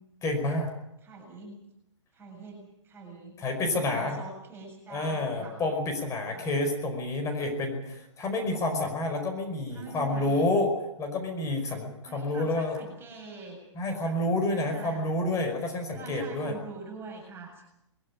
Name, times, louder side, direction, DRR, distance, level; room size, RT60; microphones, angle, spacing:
voice 1, 0.2-0.7 3.4-4.2 4.9-10.7 11.0-12.8 13.7-16.5, left 2 dB, 20° left, 5 dB, 5.2 m, -29 dB
voice 2, 1.0-1.6 2.1-3.4 3.7-5.6 6.2-6.6 9.7-10.5 12.1-13.6 14.0-14.2 14.5-15.1 15.9-17.6, right 3 dB, 15° right, 1 dB, 7.4 m, -44 dB
22.5 x 16.0 x 9.9 m, 0.83 s
hypercardioid pair, 130°, 16 cm